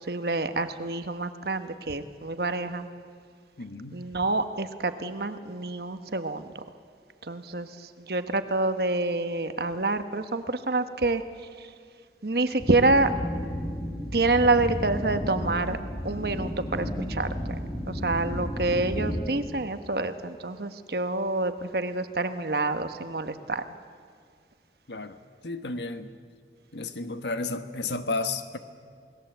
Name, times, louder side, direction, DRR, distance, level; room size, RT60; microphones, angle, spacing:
voice 1, 0.0-2.9 3.9-6.6 7.2-11.2 11.6-11.7 12.2-13.1 14.1-15.8 16.0-17.6 17.9-23.6, right 2 dB, 60° right, 9 dB, 1.2 m, -27 dB
voice 2, 3.6-4.0 24.9-25.2 25.4-26.1 26.7-28.6, left 3 dB, 80° left, 9 dB, 1.4 m, -32 dB
sound 1, 12.6-19.2, equal, 25° left, 2.9 m, -32 dB
28.0 x 20.0 x 8.0 m, 2.1 s
head